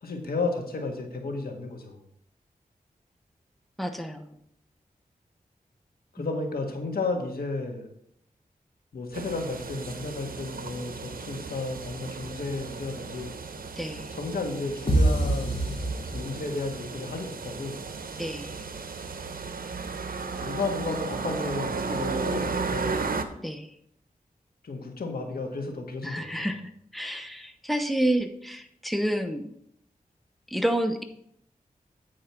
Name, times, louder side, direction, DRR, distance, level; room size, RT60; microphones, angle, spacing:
voice 1, 0.0-2.0 6.1-7.9 8.9-13.3 14.1-15.7 16.0-17.8 20.4-23.0 24.6-26.5, left 3 dB, 90° left, 2 dB, 1.6 m, -33 dB
voice 2, 3.8-4.4 6.2-6.3 13.8-14.1 18.2-18.6 23.4-23.7 26.0-26.6 26.9-29.5 30.5-31.0, right 1 dB, ahead, 7 dB, 1.0 m, -29 dB
sound 1, 9.1-23.2, right 4 dB, 70° right, 0.8 m, -34 dB
sound 2, 14.9-16.7, right 1 dB, 35° left, 2.8 m, -25 dB
9.2 x 4.9 x 6.0 m, 0.71 s
cardioid pair, 55°, 15 cm